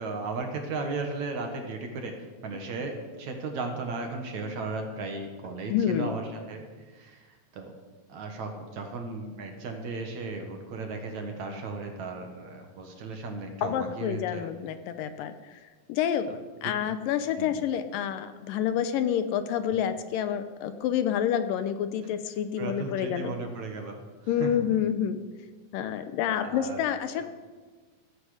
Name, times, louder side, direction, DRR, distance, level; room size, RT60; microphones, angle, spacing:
voice 1, 0.0-7.7 8.1-14.4 16.3-16.4 16.6-16.7 17.4-17.5 22.6-24.0 24.4-24.5 26.4-26.8, right 3 dB, 60° right, 4 dB, 2.5 m, -35 dB
voice 2, 5.7-6.1 13.6-15.3 15.9-16.3 16.6-23.4 24.3-25.2 25.7-27.3, left 9 dB, 75° left, 10 dB, 2.3 m, -28 dB
15.0 x 14.5 x 5.0 m, 1.4 s
omnidirectional pair, 4.1 m